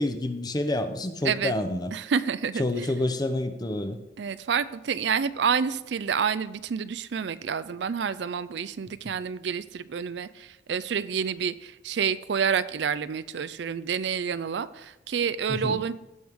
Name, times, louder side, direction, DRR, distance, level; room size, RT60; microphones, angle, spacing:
voice 1, 0.0-1.9 2.6-4.0 15.5-15.8, left 1 dB, 20° left, 8 dB, 0.7 m, -28 dB
voice 2, 1.2-1.5 1.9-2.9 4.2-16.0, right 6 dB, 65° right, 15 dB, 0.4 m, -28 dB
16.5 x 6.3 x 3.6 m, 0.95 s
head